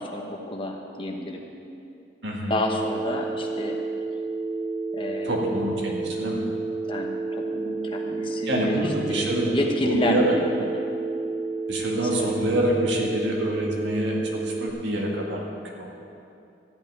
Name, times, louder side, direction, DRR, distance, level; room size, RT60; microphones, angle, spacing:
voice 1, 0.0-1.5 2.5-3.8 4.9-5.7 6.9-10.8 11.9-12.3, left 1 dB, 30° left, 1 dB, 1.1 m, -30 dB
Telephone, 2.5-14.7, right 3 dB, 15° right, 0.7 m, -30 dB
voice 2, 5.3-6.4 8.5-9.5 9.8-10.3 11.7-15.4 15.7-16.0, right 1 dB, 80° right, -2 dB, 2.0 m, -26 dB
13.5 x 5.8 x 9.2 m, 2.6 s
head